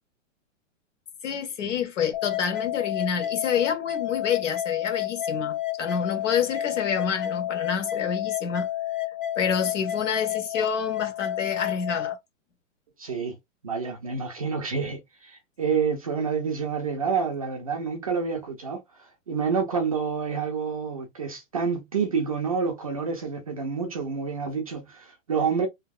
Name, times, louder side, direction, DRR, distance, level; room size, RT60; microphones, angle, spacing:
voice 1, 1.2-8.7 9.3-12.2, left 7 dB, 65° left, 1.2 m, -28 dB
sound 1, 2.1-12.1, left 13 dB, 40° left, 0.7 m, -30 dB
voice 2, 13.0-13.4 13.6-25.7, right 5 dB, 30° right, 0.4 m, -28 dB
3.0 x 2.7 x 2.3 m
hypercardioid pair, 165°, 40 cm